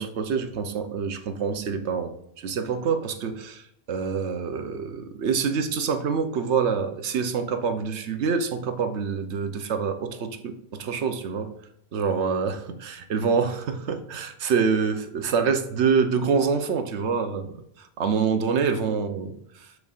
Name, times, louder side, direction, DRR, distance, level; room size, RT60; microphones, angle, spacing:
voice 1, 0.0-11.5 11.9-19.4, right 5 dB, 80° right, 8 dB, 1.1 m, -26 dB
12.5 x 4.7 x 2.4 m, 0.76 s
omnidirectional pair, 1.1 m